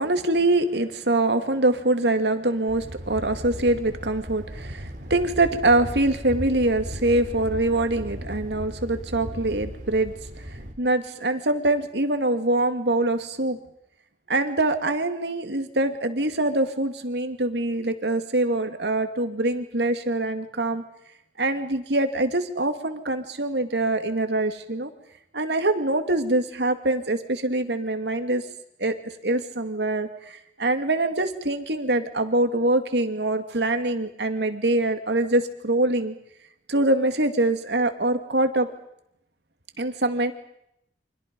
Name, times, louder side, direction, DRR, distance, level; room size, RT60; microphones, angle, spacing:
voice 1, 0.0-10.1 10.5-13.6 14.3-20.8 21.4-24.9 25.3-28.4 28.8-36.2 36.7-38.7 39.8-40.3, right 2 dB, 75° right, 7 dB, 2.4 m, -24 dB
Thunder, 2.7-10.7, equal, 50° right, 3.5 m, -36 dB
29.5 x 25.0 x 5.4 m, 0.76 s
head